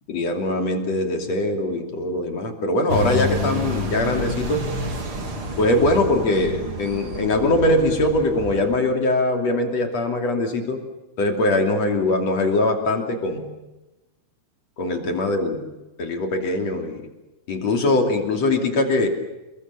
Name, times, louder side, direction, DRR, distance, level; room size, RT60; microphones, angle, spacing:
voice 1, 0.1-4.6 5.6-10.8 11.2-13.5 14.8-15.7 16.0-17.1 17.5-19.1, left 2 dB, 45° left, 4 dB, 3.7 m, -22 dB
sound 1, 2.9-8.7, equal, 35° right, 3.3 m, -29 dB
29.0 x 22.0 x 7.0 m, 1.0 s
omnidirectional pair, 4.6 m